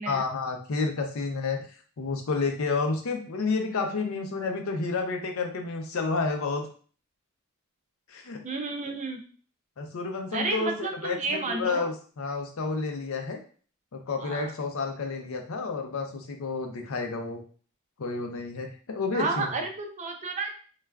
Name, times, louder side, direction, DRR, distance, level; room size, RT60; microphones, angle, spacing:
voice 1, 0.1-1.6 2.0-6.7 8.1-8.4 9.8-13.4 13.9-17.4 18.0-19.5, left 4 dB, 70° left, 4 dB, 0.5 m, -30 dB
voice 2, 8.4-9.2 10.3-11.9 14.2-14.5 19.1-20.6, right 3 dB, 35° right, 3 dB, 0.4 m, -31 dB
3.2 x 2.3 x 2.2 m, 0.42 s
head